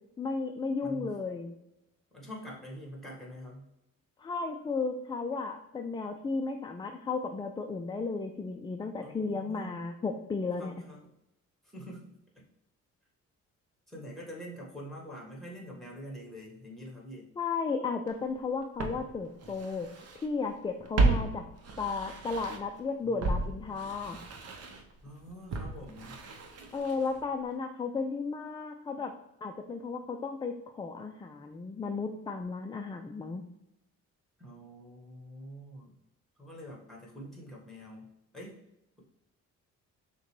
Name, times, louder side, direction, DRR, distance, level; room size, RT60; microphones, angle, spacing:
voice 1, 0.2-1.5 4.2-10.7 17.4-19.9 20.2-21.5 21.8-24.2 26.7-29.1 29.4-33.4, left 4 dB, 15° left, 5 dB, 0.3 m, -34 dB
voice 2, 0.8-1.1 2.1-3.7 9.0-9.7 10.6-11.1 11.6-12.1 13.9-17.3 23.0-23.8 25.0-26.1 28.9-29.0 34.4-35.9 36.4-38.1 38.3-38.6, equal, ahead, -2 dB, 1.6 m, -45 dB
Walk footsteps, 18.1-18.2 18.8-20.3 20.5-22.8 23.2-27.3 27.5-27.6, right 3 dB, 55° right, 0.8 m, -33 dB
6.2 x 2.3 x 3.2 m, 0.88 s
cardioid pair, 90°, 30 cm